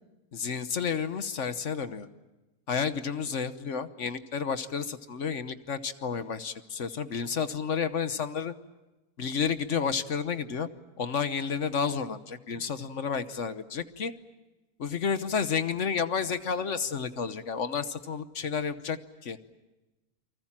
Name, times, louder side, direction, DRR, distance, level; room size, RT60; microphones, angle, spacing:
voice 1, 0.3-2.1 2.7-8.5 9.2-10.7 11.0-14.1 14.8-19.0 19.2-19.6, left 6 dB, 55° left, 11 dB, 1.3 m, -31 dB
29.5 x 24.5 x 7.4 m, 1.1 s
omnidirectional pair, 1.6 m